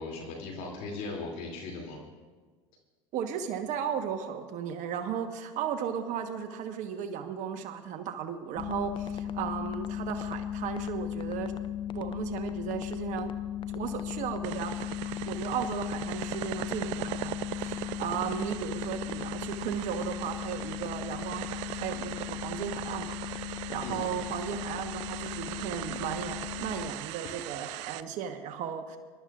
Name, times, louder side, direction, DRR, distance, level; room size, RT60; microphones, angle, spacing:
voice 1, 0.0-2.0 23.8-24.1, left 3 dB, 60° left, 0 dB, 2.7 m, -38 dB
voice 2, 3.1-11.5 11.9-13.3 13.7-14.9 15.3-29.0, right 8 dB, 50° right, 6 dB, 1.1 m, -35 dB
sound 1, 8.6-26.9, left 11 dB, 30° left, 0.6 m, -37 dB
sound 2, 14.4-28.0, right 17 dB, 70° right, 0.4 m, -39 dB
24.5 x 12.5 x 2.4 m, 1.4 s
hypercardioid pair, 90°, 16 cm